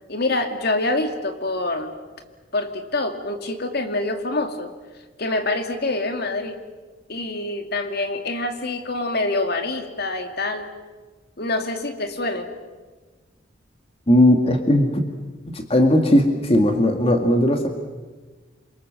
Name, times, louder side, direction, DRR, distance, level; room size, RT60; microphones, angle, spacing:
voice 1, 0.1-1.9 2.5-4.7 5.2-6.6 7.1-10.7 11.4-12.5, left 2 dB, 55° left, 6 dB, 2.4 m, -26 dB
voice 2, 14.1-14.9 15.5-17.7, left 1 dB, 30° left, 5 dB, 2.0 m, -17 dB
28.0 x 25.0 x 7.6 m, 1.3 s
head